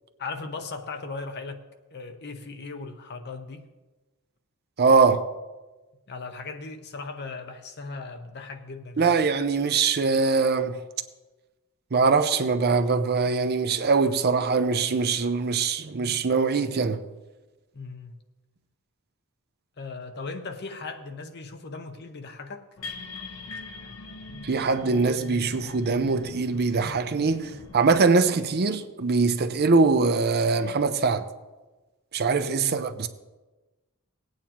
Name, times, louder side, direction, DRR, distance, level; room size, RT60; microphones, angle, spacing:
voice 1, 0.2-1.7 1.9-3.7 6.1-9.2 17.7-18.1 19.8-22.7 32.6-32.8, left 4 dB, 50° left, 0.8 m, -38 dB
voice 2, 4.8-5.3 9.0-10.8 11.9-17.0 24.4-31.3 32.1-33.1, right 4 dB, 50° right, 0.6 m, -22 dB
sound 1, 22.8-28.0, left 3 dB, 75° left, 1.0 m, -41 dB
18.5 x 9.0 x 3.0 m
head